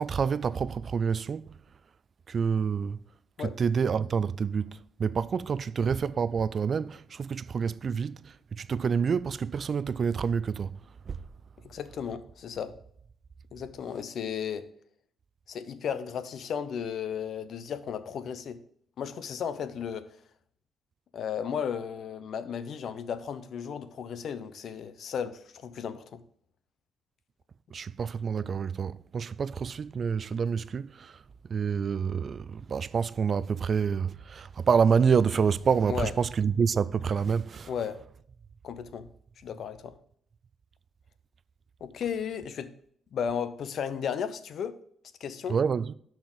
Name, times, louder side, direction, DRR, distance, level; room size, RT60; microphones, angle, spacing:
voice 1, 0.0-1.6 2.3-3.0 3.4-10.8 11.1-11.2 27.7-37.7 45.5-45.9, right 6 dB, 45° right, 0.3 m, -28 dB
voice 2, 11.6-12.7 13.5-14.7 15.5-18.6 19.0-20.1 21.1-26.2 35.9-36.1 37.7-38.0 38.6-39.1 39.4-40.0 41.8-42.7 43.1-44.8 45.2-45.6, left 7 dB, 65° left, 0.7 m, -34 dB
12.0 x 4.4 x 3.9 m
cardioid pair, 90°, 0 cm